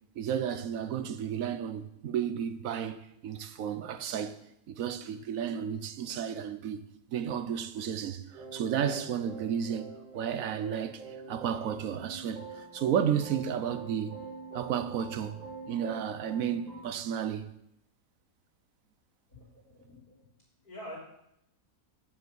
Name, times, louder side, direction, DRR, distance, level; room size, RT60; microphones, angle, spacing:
voice 1, 0.2-4.4 4.7-6.8 7.1-14.2 14.5-17.5, right 8 dB, 65° right, 1.1 m, -33 dB
sound 1, 8.3-16.8, right 4 dB, 40° right, 5.2 m, -45 dB
voice 2, 19.3-20.2 20.6-21.0, equal, 75° left, 4.0 m, -46 dB
7.9 x 7.2 x 8.0 m
omnidirectional pair, 1.7 m